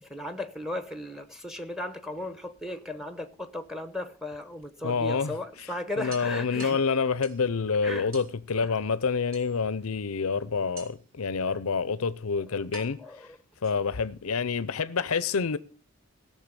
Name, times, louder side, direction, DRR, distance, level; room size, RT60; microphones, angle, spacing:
voice 1, 0.0-6.8 7.8-8.1 8.5-8.7 11.4-11.6 12.5-12.6 13.0-13.3, left 1 dB, ahead, 0.9 m, -36 dB
sound 1, 2.1-3.1 4.6-4.7 5.1-5.2 5.5-5.6 6.1-7.5 8.1-8.4 9.3-9.9 10.8-11.2 12.0-12.1 12.7-14.1, right 4 dB, 65° right, 3.2 m, -48 dB
voice 2, 4.8-13.0 13.6-15.6, left 5 dB, 80° left, 0.6 m, -28 dB
17.0 x 6.7 x 6.8 m
head